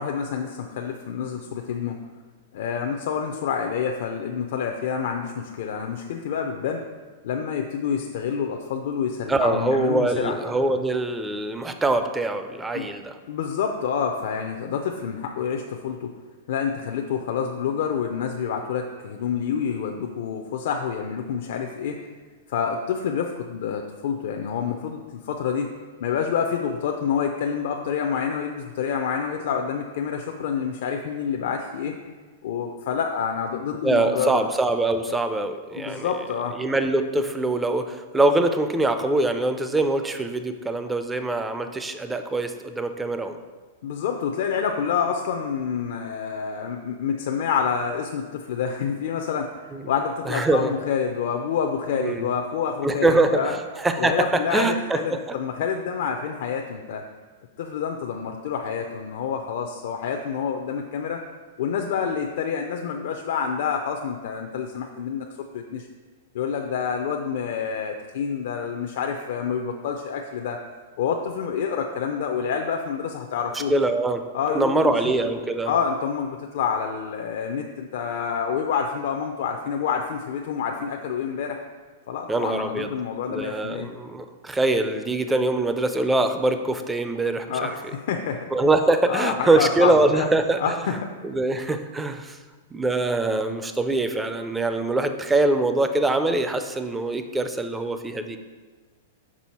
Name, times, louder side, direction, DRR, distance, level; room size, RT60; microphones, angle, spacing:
voice 1, 0.0-2.0 2.5-6.8 7.2-10.4 12.7-12.9 13.3-16.1 16.5-22.0 22.5-25.7 26.0-32.0 32.4-34.4 35.8-36.5 43.8-53.5 54.0-57.0 57.6-61.2 61.6-65.9 66.3-70.6 71.0-73.7 74.3-74.9 75.6-81.6 82.1-83.9 87.5-88.5 89.1-90.3 90.6-91.1, left 7 dB, 65° left, 3 dB, 0.5 m, -28 dB
voice 2, 9.3-13.2 33.8-36.2 36.6-43.4 49.7-49.9 50.3-50.7 52.0-52.3 52.8-55.4 73.7-74.3 74.5-75.7 82.3-82.9 83.3-87.7 88.5-90.7 91.2-92.4 92.7-98.4, right 2 dB, 10° right, 8 dB, 0.4 m, -23 dB
6.1 x 5.0 x 4.2 m, 1.5 s
supercardioid pair, 150°, 0 cm